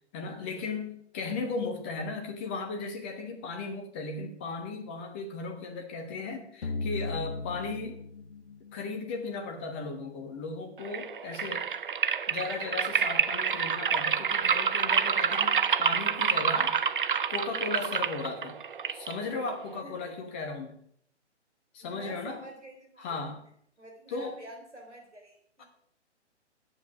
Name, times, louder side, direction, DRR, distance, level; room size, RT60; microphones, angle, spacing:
voice 1, 0.1-8.0 8.7-11.7 12.3-18.6 18.9-20.8 21.7-22.4 23.0-23.4 24.1-24.3 25.6-25.7, left 4 dB, 10° left, 4 dB, 0.6 m, -36 dB
sound 1, 6.6-9.5, left 3 dB, 65° left, 1.0 m, -37 dB
sound 2, 10.8-19.8, right 7 dB, 50° right, 0.5 m, -28 dB
voice 2, 19.8-20.1 21.8-23.2 23.8-25.7, right 1 dB, 75° right, 1 dB, 3.5 m, -47 dB
9.2 x 7.7 x 5.8 m, 0.67 s
figure-of-eight pair, 135°, 35 cm